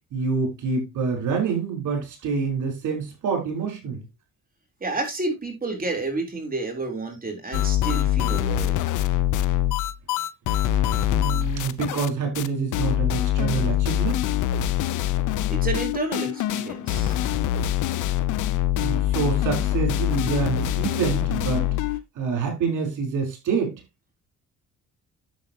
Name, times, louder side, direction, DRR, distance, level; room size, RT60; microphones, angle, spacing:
voice 1, 0.1-4.0 11.1-14.2 18.8-21.6 22.1-23.8, right 5 dB, 75° right, 4.6 m, -26 dB
voice 2, 4.8-8.8 15.5-17.2, right 3 dB, 30° right, 3.8 m, -30 dB
sound 1, 7.5-12.1 12.3-12.5 12.7-22.0, left 12 dB, 85° left, 0.8 m, -24 dB
10.0 x 7.6 x 2.9 m
cardioid pair, 90°, 30 cm